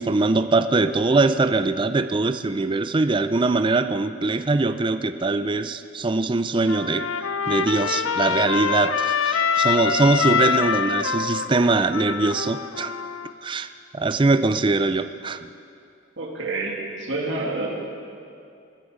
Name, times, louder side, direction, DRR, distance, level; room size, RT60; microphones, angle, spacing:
voice 1, 0.0-7.1 7.5-12.9 13.4-15.5, right 3 dB, 25° right, 11 dB, 0.4 m, -22 dB
Trumpet, 6.7-13.3, left 6 dB, 80° left, 0.6 m, -25 dB
voice 2, 16.2-17.7, right 2 dB, 60° right, -1 dB, 2.4 m, -28 dB
23.0 x 10.0 x 5.0 m, 2.5 s
head